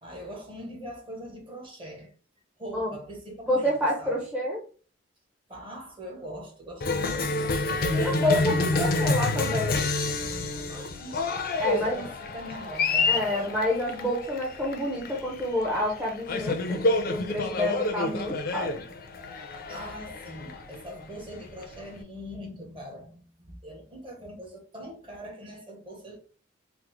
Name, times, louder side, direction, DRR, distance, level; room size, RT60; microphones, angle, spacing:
voice 1, 0.0-2.1 2.6-4.3 5.5-9.3 10.7-11.2 11.5-13.6 19.7-26.2, equal, 25° right, 0.9 m, -42 dB
voice 2, 3.5-4.6 7.9-9.9 11.6-12.1 13.1-18.8, left 1 dB, 10° right, 0.5 m, -28 dB
Cheering, 6.8-22.0, left 3 dB, 50° left, 0.4 m, -28 dB
3.5 x 2.0 x 3.0 m
head